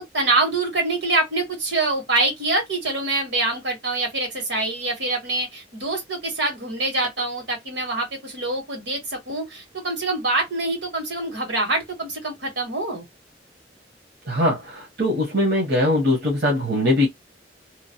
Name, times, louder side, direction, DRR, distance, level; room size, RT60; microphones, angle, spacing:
voice 1, 0.0-13.0, right 2 dB, 85° right, 1.8 m, -25 dB
voice 2, 14.3-17.1, left 1 dB, 60° right, 1.1 m, -21 dB
3.0 x 2.2 x 2.7 m
head